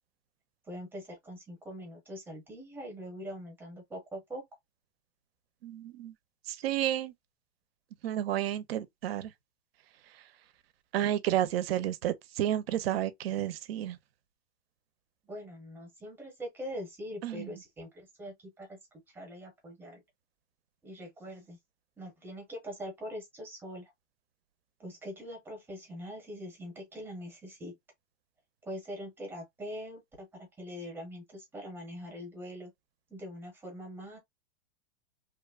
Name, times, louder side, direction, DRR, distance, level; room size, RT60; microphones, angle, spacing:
voice 1, 0.7-4.4 15.2-18.8 19.1-20.0 20.8-21.6 22.0-23.9 24.8-27.7 28.6-32.7 33.1-34.2, equal, 5° right, 0.7 m, -43 dB
voice 2, 5.6-6.1 6.5-7.1 8.0-9.3 10.1-10.2 10.9-14.0 17.2-17.5, right 12 dB, 50° right, 0.5 m, -31 dB
3.0 x 2.1 x 2.3 m
supercardioid pair, 165°, 38 cm